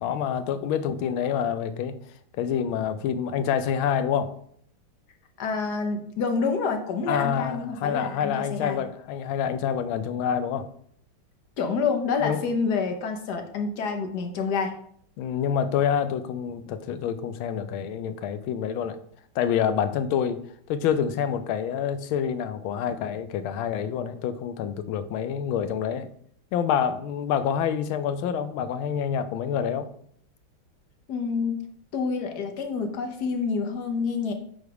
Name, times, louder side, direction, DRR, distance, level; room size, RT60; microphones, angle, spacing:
voice 1, 0.0-2.0 2.4-4.3 7.1-10.7 12.2-12.4 15.2-19.0 19.4-20.4 20.7-26.1 26.5-29.9, left 8 dB, 80° left, 11 dB, 1.4 m, -27 dB
voice 2, 5.4-8.8 11.6-14.7 31.1-31.7 31.9-34.3, left 5 dB, 60° left, 4 dB, 1.2 m, -28 dB
8.2 x 3.2 x 4.7 m, 0.64 s
omnidirectional pair, 2.3 m